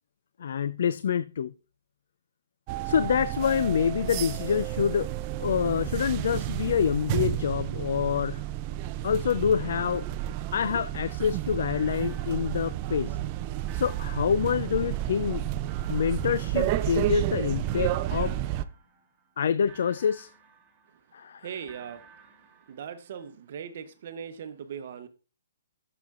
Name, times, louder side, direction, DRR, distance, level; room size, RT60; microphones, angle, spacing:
voice 1, 0.4-1.5 2.8-5.1 5.4-8.4 9.0-10.0 10.5-13.2 13.7-15.4 15.9-18.4 19.4-20.3 21.1-21.5, left 7 dB, 65° left, 0.3 m, -26 dB
sound 1, 2.7-18.6, right 13 dB, 35° right, 0.4 m, -31 dB
sound 2, 9.7-11.4 11.7-13.3 13.7-15.3 15.7-17.4 17.7-19.4 19.7-21.3 21.7-23.3, right 7 dB, 15° right, 1.8 m, -55 dB
voice 2, 21.4-22.0 22.7-25.1, right 7 dB, 55° right, 0.8 m, -39 dB
10.5 x 6.7 x 2.5 m
hypercardioid pair, 145°, 0 cm